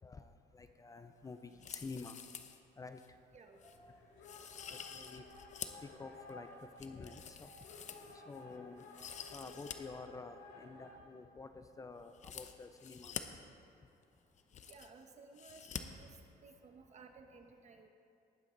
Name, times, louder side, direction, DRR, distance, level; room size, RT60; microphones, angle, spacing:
voice 1, 0.0-2.2 2.8-3.0 4.7-5.2 6.0-6.5 6.8-7.5 8.3-8.8 9.3-13.1, left 3 dB, 20° left, 8 dB, 0.5 m, -49 dB
sound 1, 1.5-2.6 3.0-3.1 3.6-3.8 4.2-5.9 6.3-8.4 8.8-9.8 10.0-10.1 12.1-13.2 14.0-14.1 14.3-15.0 15.4-15.8 16.1-16.2, left 8 dB, 45° left, 0.8 m, -48 dB
sound 2, 3.5-10.9, left 3 dB, 85° left, 2.6 m, -55 dB
voice 2, 14.7-16.1 16.4-17.9, right 4 dB, 40° right, 5 dB, 1.3 m, -57 dB
19.0 x 8.9 x 4.0 m, 2.6 s
cardioid pair, 110°, 17 cm